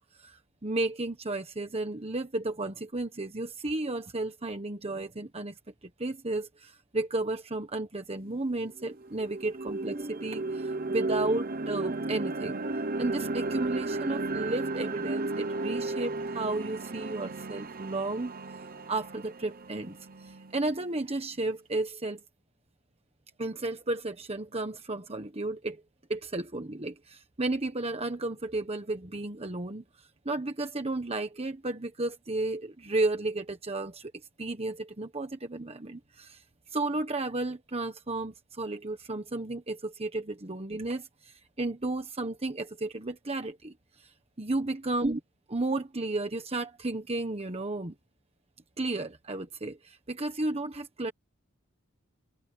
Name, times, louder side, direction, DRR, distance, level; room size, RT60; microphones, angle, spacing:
voice 1, 0.2-12.6 13.0-18.3 18.9-22.2 23.4-25.8 26.1-34.1 34.4-36.4 36.7-45.2 45.5-47.9 48.8-51.1, right 2 dB, 30° right, 1.3 m, -33 dB
sound 1, 8.2-8.3 8.8-20.8, right 2 dB, 45° right, 1.0 m, -34 dB
head